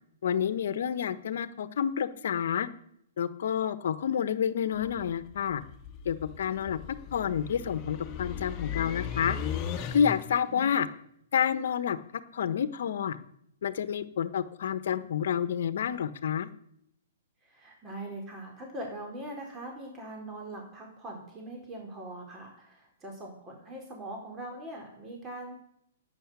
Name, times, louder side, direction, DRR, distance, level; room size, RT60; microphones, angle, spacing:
voice 1, 0.2-2.7 3.2-5.6 6.0-6.8 7.1-9.4 9.9-10.9 11.3-12.0 12.3-13.2 13.6-16.5, left 8 dB, 65° left, 13 dB, 1.2 m, -29 dB
sound 1, 4.7-10.4, left 7 dB, 25° left, 2.0 m, -37 dB
voice 2, 17.4-25.5, right 1 dB, 20° right, 1 dB, 4.4 m, -42 dB
11.5 x 9.4 x 9.6 m, 0.73 s
hypercardioid pair, 135°, 0 cm